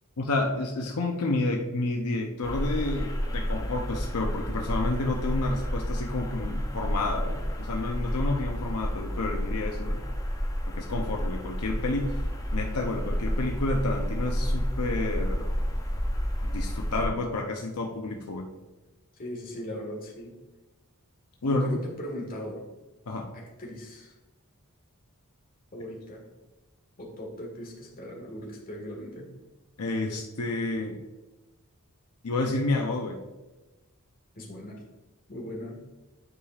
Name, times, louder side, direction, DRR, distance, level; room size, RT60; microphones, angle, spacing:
voice 1, 0.2-10.0 10.7-12.2 12.5-15.5 16.4-18.5 21.4-21.8 23.1-23.3 29.8-31.0 32.2-33.2, left 2 dB, 80° left, 2 dB, 0.7 m, -30 dB
sound 1, 2.4-17.1, equal, 15° left, 0.6 m, -30 dB
voice 2, 19.2-20.3 21.4-22.7 23.3-24.1 25.7-26.2 27.0-29.3 34.3-34.8 35.3-35.8, equal, 40° left, -1 dB, 1.6 m, -39 dB
9.8 x 5.0 x 2.4 m, 1.1 s
head